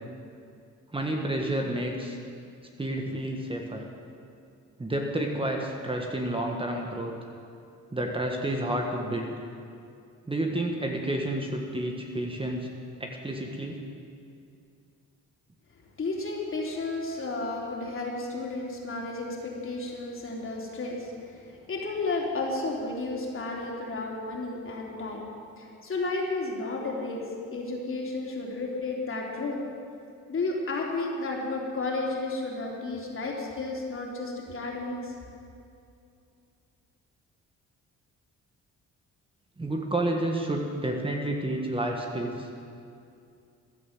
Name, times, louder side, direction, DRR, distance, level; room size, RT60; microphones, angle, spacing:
voice 1, 0.9-2.2 2.8-3.8 4.8-7.1 7.9-9.3 10.3-12.7 13.0-13.8 39.6-42.5, right 1 dB, 20° right, 1 dB, 1.7 m, -30 dB
voice 2, 16.0-25.3 25.6-29.6 30.3-35.1, left 3 dB, 45° left, -1 dB, 3.6 m, -32 dB
15.5 x 11.0 x 7.5 m, 2.5 s
cardioid pair, 90°, 30 cm